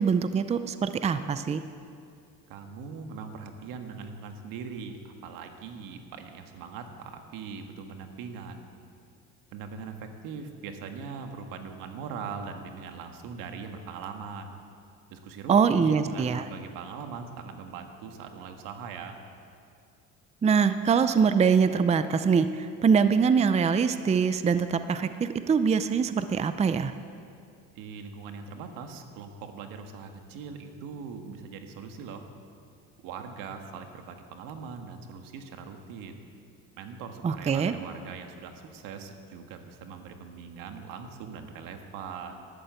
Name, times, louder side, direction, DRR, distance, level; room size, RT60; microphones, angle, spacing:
voice 1, 0.0-1.6 15.5-16.4 20.4-26.9 37.2-37.7, right 6 dB, 20° right, 11 dB, 0.5 m, -23 dB
voice 2, 2.5-8.6 9.5-14.6 15.1-19.2 27.7-32.3 33.0-36.2 36.8-42.5, right 5 dB, 80° right, 5 dB, 1.6 m, -41 dB
12.5 x 11.5 x 8.2 m, 2.4 s
cardioid pair, 110°, 33 cm